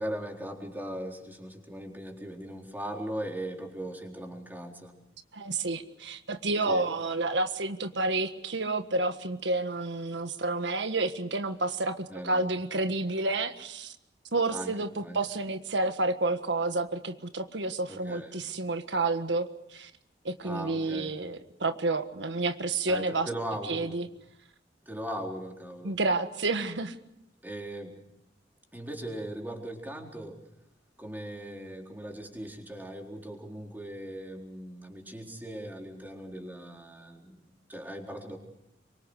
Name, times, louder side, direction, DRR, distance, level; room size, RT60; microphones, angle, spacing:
voice 1, 0.0-5.0 6.7-6.9 12.1-12.5 14.5-14.7 15.0-15.2 17.9-18.4 20.4-21.2 22.9-24.0 24.9-25.9 27.4-28.0 28.7-30.4 31.0-38.4, right 1 dB, 10° right, 1 dB, 4.1 m, -39 dB
voice 2, 5.3-13.9 14.3-19.9 20.2-23.3 23.7-24.1 25.8-26.9, right 2 dB, 90° right, 8 dB, 1.6 m, -30 dB
26.0 x 24.5 x 6.5 m, 0.80 s
head